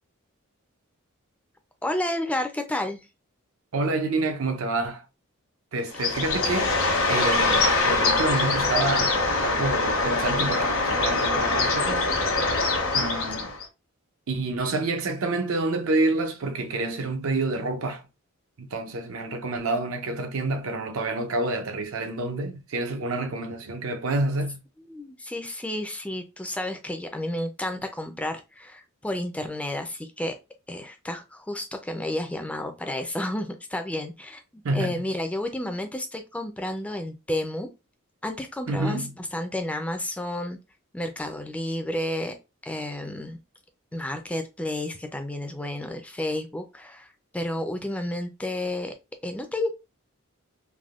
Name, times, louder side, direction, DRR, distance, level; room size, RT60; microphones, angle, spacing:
voice 1, 1.8-3.1 24.9-30.3 30.7-37.7 38.2-40.6 40.9-42.3 42.6-43.4 43.9-48.9 49.2-49.7, left 1 dB, 5° left, 0.3 m, -31 dB
voice 2, 3.7-5.0 5.7-6.8 7.1-12.1 12.9-13.5 14.3-18.0 18.6-24.6 34.6-35.1 38.7-39.2, right 2 dB, 75° right, 0.6 m, -28 dB
Bird, 5.9-13.6, left 3 dB, 75° left, 1.0 m, -23 dB
3.4 x 2.1 x 2.3 m
head